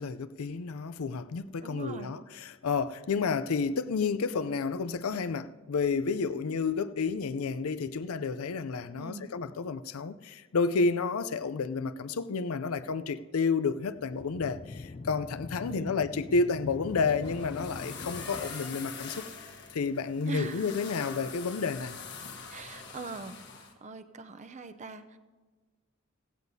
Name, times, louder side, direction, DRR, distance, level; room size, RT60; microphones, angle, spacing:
voice 1, 0.0-19.3 19.7-22.0, left 4 dB, 90° left, 0.5 m, -30 dB
voice 2, 1.6-2.2 9.0-9.3 15.7-15.9 20.3-20.7 22.5-23.4 23.8-25.2, right 3 dB, 35° right, 0.6 m, -41 dB
sound 1, 13.7-18.5, left 3 dB, 30° left, 0.3 m, -43 dB
sound 2, 16.9-23.7, left 5 dB, 55° left, 1.4 m, -44 dB
16.0 x 16.0 x 2.7 m
head